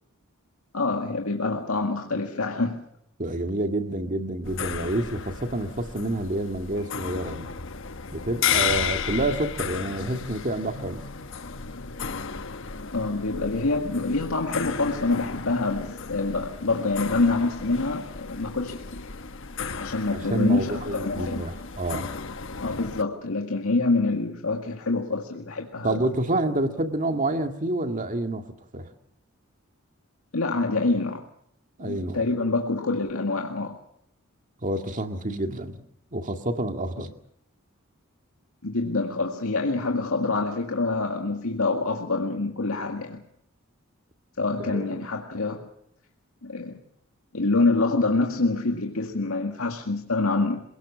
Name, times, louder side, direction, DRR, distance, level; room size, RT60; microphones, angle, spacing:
voice 1, 0.7-2.8 12.9-19.1 19.8-21.5 22.6-26.0 30.3-31.3 31.8-33.8 38.6-43.2 44.4-45.7 46.4-46.8 47.3-50.6, left 3 dB, 85° left, 2 dB, 2.0 m, -26 dB
voice 2, 3.2-7.5 8.1-11.0 20.1-22.1 25.8-28.4 28.7-28.9 31.8-32.2 34.6-35.8 36.1-37.1 44.6-44.9, right 1 dB, 40° right, 6 dB, 2.1 m, -28 dB
sound 1, 4.4-23.0, left 6 dB, 65° left, 1.2 m, -34 dB
27.5 x 18.0 x 7.4 m, 0.71 s
head